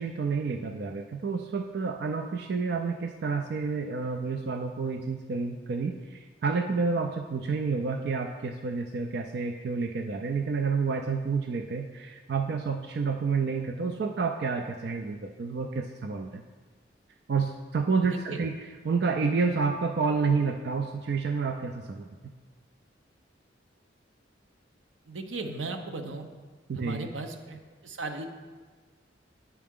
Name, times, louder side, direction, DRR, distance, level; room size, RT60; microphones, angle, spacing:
voice 1, 0.0-16.4 17.3-18.5 18.8-22.1 26.7-27.1, right 4 dB, 60° right, 4 dB, 0.4 m, -29 dB
voice 2, 18.1-18.4 25.1-26.3 26.7-28.3, right 3 dB, 90° right, 6 dB, 0.8 m, -37 dB
8.5 x 5.8 x 3.6 m, 1.4 s
head